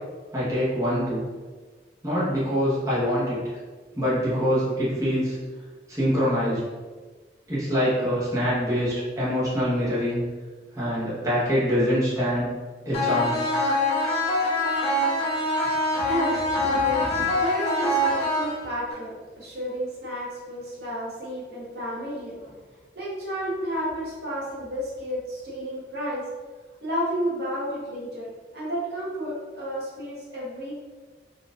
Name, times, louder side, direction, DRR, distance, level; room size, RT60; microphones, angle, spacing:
voice 1, 0.3-1.2 2.0-3.4 3.9-5.4 5.9-6.7 7.5-10.2 10.7-12.5 12.8-13.5, equal, 20° right, -9 dB, 0.8 m, -24 dB
sound 1, 12.9-18.9, left 1 dB, 35° left, 0.6 m, -24 dB
voice 2, 16.0-22.6 22.9-26.2 26.8-28.3 28.5-30.7, equal, 65° right, -7 dB, 1.1 m, -31 dB
3.9 x 2.3 x 2.4 m, 1.4 s
head